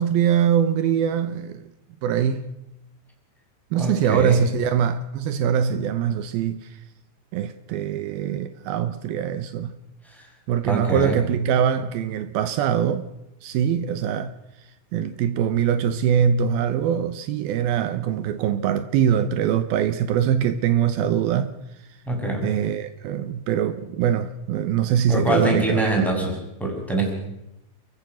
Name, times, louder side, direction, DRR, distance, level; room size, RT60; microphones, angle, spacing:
voice 1, 0.0-1.6 2.0-2.5 3.7-6.8 7.3-9.8 10.5-13.1 13.4-14.3 14.9-21.5 22.4-25.9, right 8 dB, 85° right, 2.1 m, -23 dB
voice 2, 3.7-4.4 10.1-10.3 10.6-11.2 22.1-22.5 25.1-27.1, right 1 dB, ahead, 6.4 m, -24 dB
30.0 x 15.5 x 6.2 m
omnidirectional pair, 5.5 m